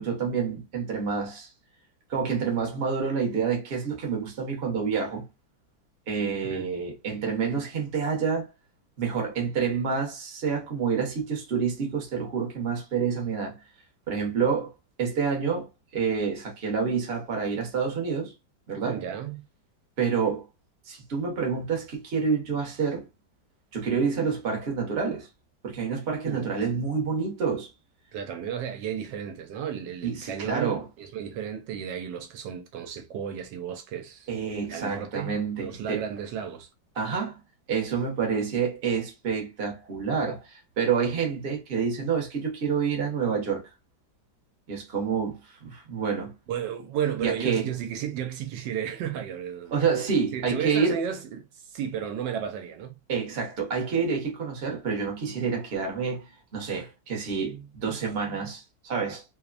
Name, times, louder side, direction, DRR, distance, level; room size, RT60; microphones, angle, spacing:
voice 1, 0.0-1.5 2.1-5.3 6.1-8.5 9.0-13.6 14.1-14.7 15.0-18.3 18.7-19.0 20.0-20.4 20.9-23.0 23.7-25.3 25.6-27.7 30.0-30.9 34.3-36.0 37.0-37.4 37.7-43.7 44.7-46.3 47.2-47.7 49.7-51.0 53.1-56.2 56.5-59.2, right 6 dB, 45° right, 0.9 m, -28 dB
voice 2, 6.1-6.7 18.8-19.4 26.3-26.5 28.1-34.3 34.7-36.7 46.5-49.8 50.3-52.9, right 9 dB, 80° right, 1.2 m, -33 dB
3.1 x 2.1 x 2.3 m
omnidirectional pair, 2.0 m